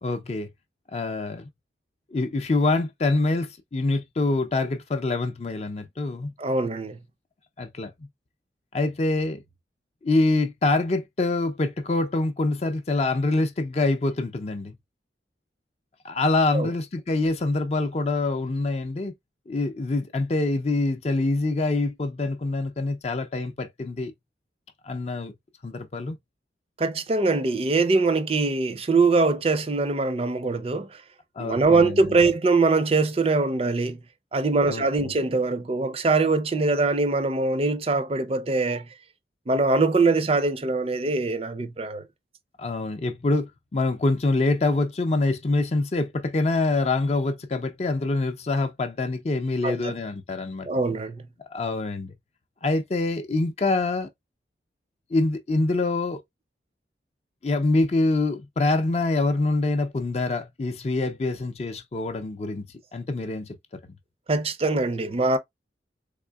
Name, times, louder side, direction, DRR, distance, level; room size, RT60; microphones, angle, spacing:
voice 1, 0.0-0.5 0.9-1.5 2.1-6.3 7.6-7.9 8.7-9.4 10.0-14.7 16.0-19.1 19.5-24.1 24.8-25.3 25.6-26.2 31.4-32.2 34.6-35.1 42.6-50.7 51.4-52.1 52.6-54.1 55.1-56.2 57.4-62.6 62.9-63.5, left 2 dB, 35° left, 0.4 m, -25 dB
voice 2, 6.4-7.0 16.5-16.7 26.8-31.0 31.4-34.0 34.3-38.9 39.5-42.1 49.6-49.9 50.6-51.3 64.3-65.4, right 3 dB, 35° right, 0.5 m, -23 dB
3.6 x 3.3 x 2.2 m
head